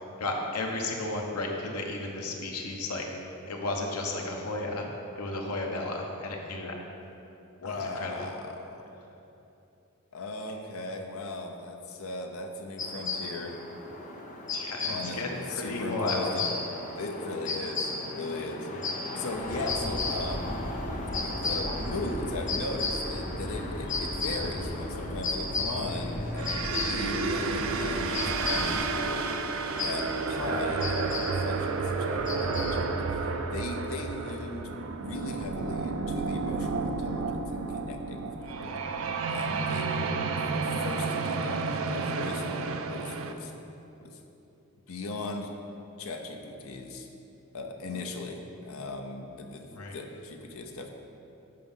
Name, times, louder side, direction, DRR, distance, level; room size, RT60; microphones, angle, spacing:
voice 1, 0.2-3.1 3.5-4.9 5.1-6.8 7.6-8.3 14.5-16.3 18.7-18.9 49.7-50.0, left 2 dB, 90° left, 1 dB, 1.0 m, -33 dB
voice 2, 7.6-8.9 10.1-13.6 14.8-16.6 16.9-18.7 19.2-20.6 21.2-29.5 29.8-38.8 39.3-43.5 44.0-44.2 44.9-45.5 46.0-47.1 47.5-50.9, left 2 dB, 70° left, 4 dB, 0.7 m, -38 dB
sound 1, 12.8-32.7, left 3 dB, 35° left, 0.7 m, -35 dB
sound 2, 19.3-28.8, equal, 15° left, 1.6 m, -38 dB
sound 3, 26.4-43.3, right 4 dB, 65° right, 0.4 m, -31 dB
7.6 x 4.9 x 5.5 m, 2.9 s
head